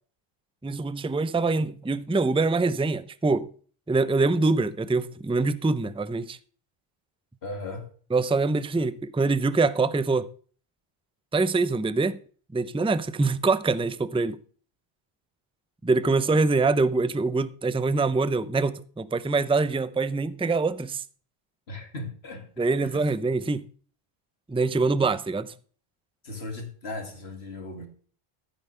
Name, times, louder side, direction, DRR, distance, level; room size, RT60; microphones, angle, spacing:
voice 1, 0.6-3.5 3.9-6.4 8.1-10.3 11.3-12.2 12.5-14.4 15.8-21.0 22.6-23.7 24.5-25.5, right 3 dB, 10° right, 0.3 m, -24 dB
voice 2, 7.4-7.9 21.7-22.5 22.8-23.0 26.2-27.9, left 2 dB, 85° left, 2.5 m, -37 dB
14.0 x 9.1 x 3.3 m
omnidirectional pair, 1.0 m